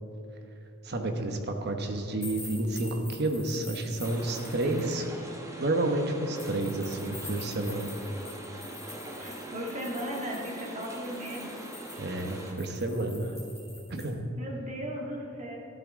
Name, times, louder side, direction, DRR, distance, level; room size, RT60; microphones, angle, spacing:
voice 1, 0.8-5.0 5.6-7.9 12.0-13.3 13.9-14.2, right 2 dB, 55° right, 5 dB, 1.1 m, -30 dB
sound 1, 2.2-4.9 6.4-14.0, left 2 dB, 15° left, 3.1 m, -46 dB
sound 2, 4.0-12.5, right 1 dB, 15° right, 1.3 m, -42 dB
voice 2, 4.6-5.0 9.2-11.6 14.4-15.6, equal, 35° right, -1 dB, 1.8 m, -37 dB
13.0 x 12.0 x 3.7 m, 2.6 s
head